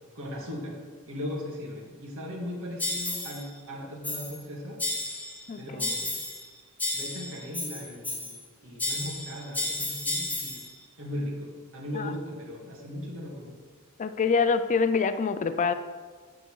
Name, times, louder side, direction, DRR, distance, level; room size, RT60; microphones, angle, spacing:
voice 1, 0.2-0.8 1.1-4.8 5.6-6.1 6.9-8.3 8.6-10.6 11.0-13.5, left 1 dB, 65° right, -2 dB, 2.0 m, -38 dB
sound 1, 2.8-3.4 4.0-4.4 4.8-5.4 5.8-6.5 6.8-8.4 8.8-10.7, left 2 dB, 5° left, 1.1 m, -32 dB
voice 2, 5.5-5.9 11.9-12.1 14.0-15.7, left 5 dB, 35° left, 11 dB, 0.3 m, -26 dB
8.0 x 6.8 x 4.6 m, 1.5 s
head